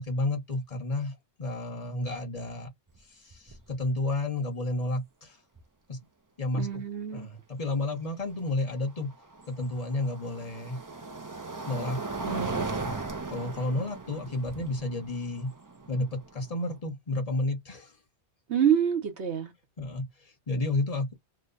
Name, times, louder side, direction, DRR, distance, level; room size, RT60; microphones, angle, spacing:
voice 1, 0.0-2.7 3.2-5.4 5.9-6.0 6.4-6.7 7.1-9.1 9.6-10.8 11.6-12.0 12.8-12.9 13.3-15.5 15.9-17.9 19.8-20.0 20.5-21.1, left 2 dB, 35° left, 1.1 m, -31 dB
sound 1, 2.9-3.0 3.3-3.7 5.6-5.7 8.6-16.8, right 3 dB, 25° right, 0.4 m, -38 dB
voice 2, 6.5-7.3 12.2-12.8 18.5-19.5, right 8 dB, 75° right, 1.3 m, -27 dB
3.0 x 2.2 x 3.8 m
omnidirectional pair, 1.2 m